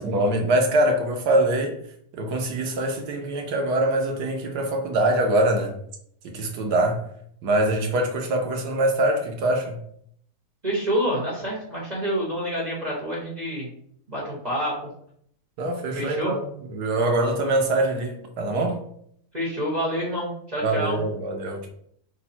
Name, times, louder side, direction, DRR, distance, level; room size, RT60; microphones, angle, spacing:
voice 1, 0.0-1.7 2.1-5.7 6.2-7.0 7.4-9.8 15.6-16.4 16.7-18.8 20.6-21.7, right 1 dB, 80° right, 1.4 m, -23 dB
voice 2, 10.6-13.7 14.1-14.9 15.9-16.3 19.3-21.0, equal, 25° right, 1.3 m, -27 dB
5.3 x 2.3 x 4.3 m
omnidirectional pair, 1.7 m